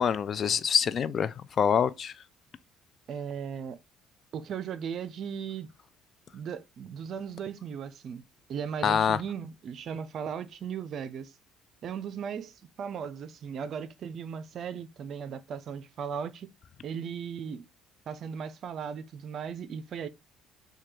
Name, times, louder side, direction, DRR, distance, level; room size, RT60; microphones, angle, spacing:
voice 1, 0.0-2.1 8.8-9.2, left 7 dB, 50° left, 0.3 m, -25 dB
voice 2, 3.1-3.8 4.3-5.7 6.3-8.2 8.5-11.3 11.8-16.5 16.8-17.6 18.1-20.1, right 7 dB, 60° right, 0.4 m, -37 dB
3.2 x 2.3 x 3.0 m
supercardioid pair, 75°, 0 cm